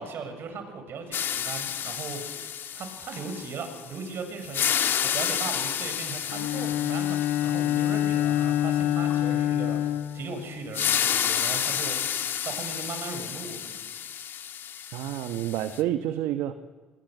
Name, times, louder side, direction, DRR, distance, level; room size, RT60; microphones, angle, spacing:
voice 1, 0.0-13.7, right 4 dB, 55° right, 7 dB, 6.9 m, -38 dB
sound 1, 1.1-4.0 4.4-9.2 10.7-15.8, left 9 dB, 50° left, 1.6 m, -31 dB
Bowed string instrument, 6.3-10.9, left 12 dB, 75° left, 2.6 m, -26 dB
voice 2, 14.9-16.5, right 12 dB, 70° right, 9 dB, 1.3 m, -29 dB
24.0 x 23.0 x 8.2 m, 1.4 s
hypercardioid pair, 70°, 5 cm